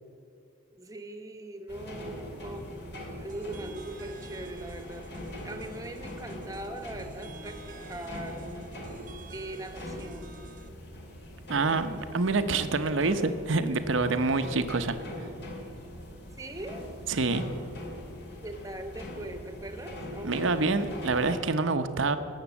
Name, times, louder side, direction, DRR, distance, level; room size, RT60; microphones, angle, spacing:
voice 1, 0.7-2.7 3.2-5.1 5.4-8.7 9.3-10.4 16.4-16.8 18.4-20.7, right 1 dB, 15° right, 7 dB, 1.1 m, -41 dB
sound 1, 1.7-21.4, left 1 dB, 55° left, 2.3 m, -42 dB
sound 2, 3.3-10.7, right 3 dB, 40° right, 1.0 m, -49 dB
voice 2, 11.5-15.0 17.1-17.4 20.2-22.2, right 3 dB, 70° right, 10 dB, 0.8 m, -26 dB
18.5 x 7.4 x 7.2 m, 2.7 s
head